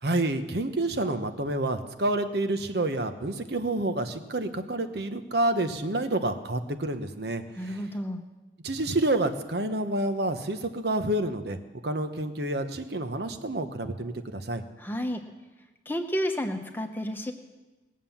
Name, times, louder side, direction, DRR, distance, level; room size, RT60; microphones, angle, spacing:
voice 1, 0.0-7.8 8.6-11.6 11.8-14.6, right 2 dB, 65° right, 8 dB, 1.0 m, -28 dB
voice 2, 7.6-8.2 14.8-15.2 15.9-17.3, equal, 10° left, 5 dB, 1.0 m, -31 dB
20.0 x 7.5 x 7.2 m, 1.2 s
head